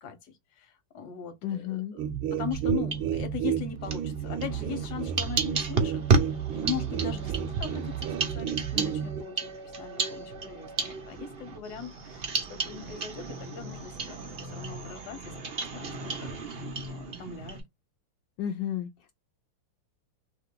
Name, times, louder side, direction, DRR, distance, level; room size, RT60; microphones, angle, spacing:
voice 1, 0.0-6.0 6.5-9.5 9.8-17.6, left 7 dB, 55° left, 1.4 m, -40 dB
voice 2, 1.4-2.0 18.4-19.1, left 10 dB, 70° left, 1.1 m, -32 dB
sound 1, 2.0-9.2, right 9 dB, 75° right, 1.3 m, -32 dB
sound 2, 2.5-3.4 3.8-17.6, right 4 dB, 60° right, 0.6 m, -32 dB
3.5 x 3.3 x 3.7 m
omnidirectional pair, 2.4 m